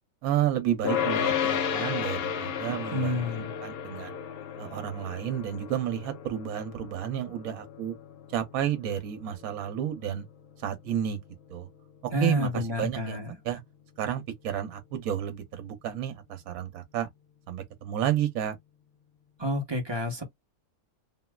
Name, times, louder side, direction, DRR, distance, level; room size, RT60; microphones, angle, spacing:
voice 1, 0.2-3.3 3.6-4.2 4.6-8.0 8.3-10.3 10.6-11.2 11.5-11.7 12.0-13.2 13.4-13.6 14.0-17.1 17.5-18.6, right 10 dB, 70° right, 1.1 m, -31 dB
sound 1, 0.8-12.2, left 8 dB, 80° left, 0.5 m, -34 dB
voice 2, 2.9-3.5 12.1-13.3 19.4-20.2, left 1 dB, 25° right, 0.6 m, -29 dB
3.0 x 2.7 x 2.2 m
omnidirectional pair, 1.6 m